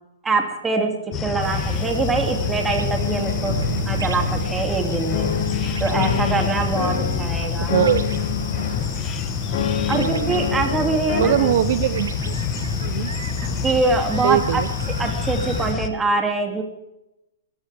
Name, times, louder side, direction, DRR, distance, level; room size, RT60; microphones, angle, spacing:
voice 1, 0.2-3.6 3.9-5.3 5.8-7.7 9.9-11.5 13.4-14.6 15.0-16.6, right 3 dB, 10° right, 3 dB, 2.7 m, -24 dB
sound 1, 1.1-15.9, left 7 dB, 25° left, 1.3 m, -27 dB
sound 2, 1.4-15.7, right 5 dB, 90° right, 1.4 m, -34 dB
sound 3, 3.0-4.8 5.1-7.3 7.7-8.9 9.5-11.5, left 8 dB, 55° left, 2.4 m, -27 dB
voice 2, 7.6-8.1 9.9-10.4 11.2-12.4 12.8-13.1 14.2-14.7, right 11 dB, 55° right, 14 dB, 0.7 m, -22 dB
21.0 x 15.0 x 3.5 m, 0.91 s
hypercardioid pair, 140°, 0 cm